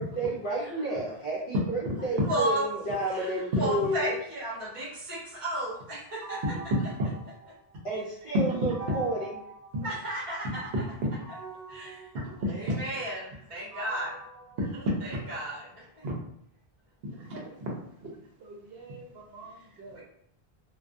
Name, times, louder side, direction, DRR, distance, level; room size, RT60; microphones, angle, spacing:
voice 1, 0.0-4.1 7.8-9.3, right 2 dB, 40° left, -7 dB, 0.6 m, -31 dB
voice 2, 2.2-2.6 3.1-6.4 9.8-10.7 11.7-12.1 12.5-14.1 14.8-16.0 19.9-20.0, equal, 35° right, -8 dB, 0.9 m, -34 dB
sound 1, 6.2-8.0 8.7-10.5 11.2-15.5, right 4 dB, 50° right, 0.5 m, -45 dB
voice 3, 12.4-12.8 14.6-14.7 16.0-16.1 17.0-17.7 18.0-18.1 18.4-20.0, equal, 75° right, -1 dB, 0.9 m, -35 dB
2.3 x 2.2 x 2.5 m, 0.70 s
omnidirectional pair, 1.0 m